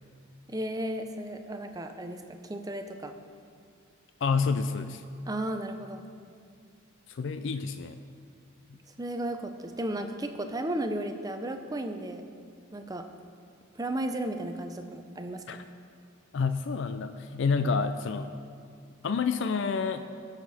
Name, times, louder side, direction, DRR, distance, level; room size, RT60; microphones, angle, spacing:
voice 1, 0.5-2.2 2.5-3.1 5.2-6.0 9.0-12.3 12.7-13.0 13.8-15.6, right 1 dB, 20° right, 6 dB, 0.6 m, -34 dB
voice 2, 4.2-5.0 7.1-8.0 8.7-8.8 15.5-15.6 16.3-18.3 19.0-20.0, left 5 dB, 60° left, 9 dB, 0.4 m, -29 dB
19.5 x 6.6 x 4.2 m, 2.3 s
head